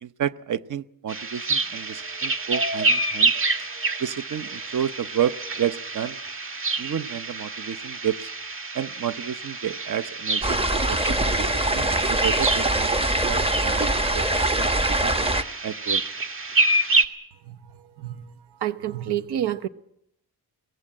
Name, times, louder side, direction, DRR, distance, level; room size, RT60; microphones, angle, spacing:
voice 1, 0.0-3.3 4.0-6.2 6.8-8.3 8.7-15.2 15.6-16.0, right 9 dB, 50° right, 13 dB, 0.8 m, -31 dB
sound 1, 1.1-17.0, right 2 dB, 35° right, 1.9 m, -27 dB
sound 2, 10.4-15.4, right 1 dB, 15° right, 1.0 m, -23 dB
voice 2, 17.5-18.3 18.6-19.7, right 11 dB, 90° right, 13 dB, 1.0 m, -29 dB
23.0 x 18.0 x 8.6 m, 0.77 s
wide cardioid pair, 125°, 38 cm